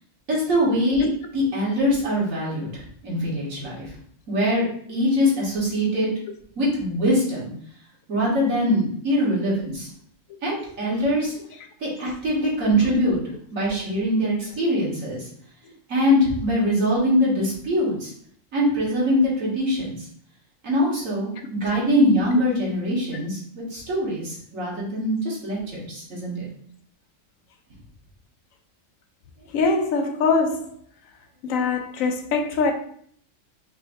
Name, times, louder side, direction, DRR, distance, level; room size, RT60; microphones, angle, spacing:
voice 1, 0.3-1.1 1.3-3.9 4.3-6.1 6.6-7.5 8.1-9.9 10.4-11.3 11.8-13.2 13.5-15.3 15.9-18.1 18.5-20.0 20.6-23.4 23.7-26.3, equal, 80° right, 2.0 m, -23 dB
voice 2, 29.5-30.7 31.4-32.7, left 4 dB, 90° left, 1.1 m, -23 dB
5.4 x 3.8 x 2.6 m
omnidirectional pair, 1.4 m